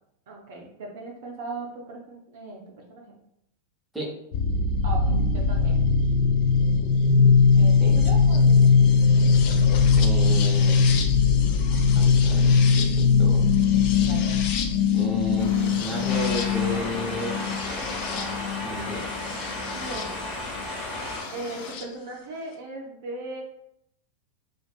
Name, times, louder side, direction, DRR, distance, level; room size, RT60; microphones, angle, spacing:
voice 1, 0.3-2.6 2.9-3.1 4.8-5.8 7.5-8.9 14.0-14.4 19.7-20.1 21.3-23.4, right 2 dB, 55° right, -1 dB, 0.5 m, -37 dB
sound 1, 4.3-20.1 21.2-21.8, left 5 dB, 45° left, 0.3 m, -20 dB
voice 2, 9.9-10.9 11.9-13.4 14.9-17.4 18.6-19.0, equal, 5° right, -4 dB, 0.7 m, -32 dB
sound 2, 15.4-21.7, left 2 dB, 75° left, 0.7 m, -41 dB
sound 3, 16.1-21.2, left 2 dB, 25° left, 0.9 m, -34 dB
2.5 x 2.3 x 2.3 m, 0.77 s
figure-of-eight pair, 90°, 0 cm